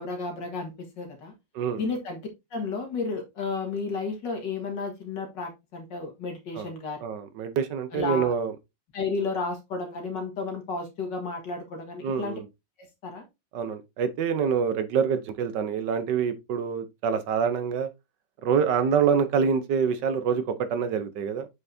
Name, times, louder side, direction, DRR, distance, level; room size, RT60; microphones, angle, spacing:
voice 1, 0.0-1.3 1.8-2.2 2.5-7.0 7.9-8.3 8.9-12.4 13.0-13.3, left 4 dB, 75° left, 2.4 m, -32 dB
voice 2, 7.0-8.5 12.0-12.4 13.5-17.9 18.4-21.5, right 7 dB, 75° right, 1.5 m, -26 dB
8.0 x 5.6 x 2.7 m
omnidirectional pair, 1.9 m